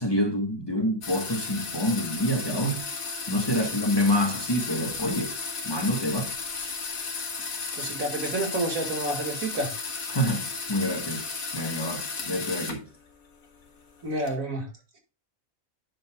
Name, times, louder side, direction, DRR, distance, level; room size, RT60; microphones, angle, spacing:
voice 1, 0.0-2.8 3.3-5.4 5.6-6.3 10.1-11.2 11.5-12.8, equal, 20° left, 1.4 m, -27 dB
sound 1, 1.0-12.9 13.3-14.3, left 4 dB, 75° left, 1.8 m, -34 dB
voice 2, 7.7-9.7 14.0-14.7, right 1 dB, 75° right, 2.3 m, -29 dB
9.5 x 6.9 x 2.3 m
omnidirectional pair, 1.5 m